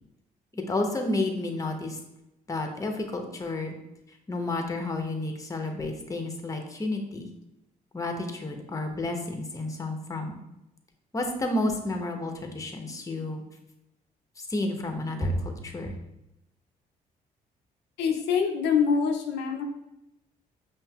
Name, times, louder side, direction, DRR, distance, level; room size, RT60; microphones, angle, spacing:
voice 1, 0.5-2.0 2.5-3.7 4.3-7.3 7.9-10.4 11.1-13.4 14.5-15.9, left 2 dB, 20° left, 4 dB, 0.7 m, -31 dB
voice 2, 18.0-19.6, left 6 dB, 85° left, 2 dB, 0.5 m, -25 dB
5.4 x 2.6 x 2.3 m, 0.88 s
supercardioid pair, 65°, 17 cm